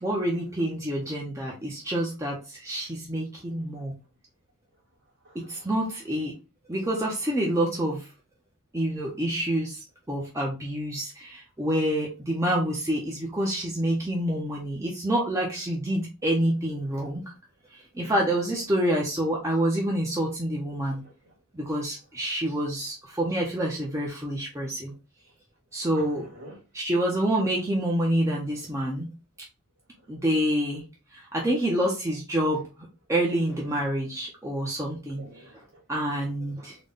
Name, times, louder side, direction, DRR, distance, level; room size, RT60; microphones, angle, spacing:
voice 1, 0.0-3.9 5.3-6.3 6.7-8.1 8.7-17.2 17.7-21.0 21.5-24.9 25.7-26.3 26.7-29.1 30.1-30.8 31.1-35.2 35.9-36.8, right 1 dB, 15° right, 0.5 m, -27 dB
voice 2, 5.2-5.7 21.0-21.3 25.9-26.6 35.2-35.8, right 1 dB, 50° right, 1.8 m, -48 dB
3.9 x 2.1 x 3.5 m
head